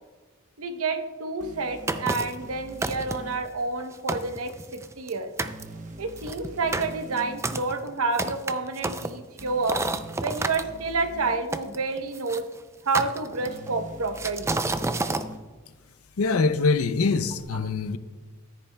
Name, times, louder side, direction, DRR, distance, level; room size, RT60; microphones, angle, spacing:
voice 1, 0.6-5.3 6.0-9.8 10.2-12.5 12.8-14.6, right 3 dB, 85° right, 0.9 m, -29 dB
sound 1, 1.4-3.4 5.4-7.4 9.4-11.4 13.4-15.4 17.4-17.5, equal, 40° right, 0.9 m, -43 dB
sound 2, 1.9-2.4 2.8-3.4 3.8-3.9 4.1-5.1 5.4-5.6 6.2-10.6 11.5-12.4 12.9-13.7 14.2-15.3, right 3 dB, 15° right, 0.3 m, -30 dB
voice 2, 16.2-18.0, left 4 dB, 80° left, 0.5 m, -23 dB
14.0 x 10.0 x 2.2 m
head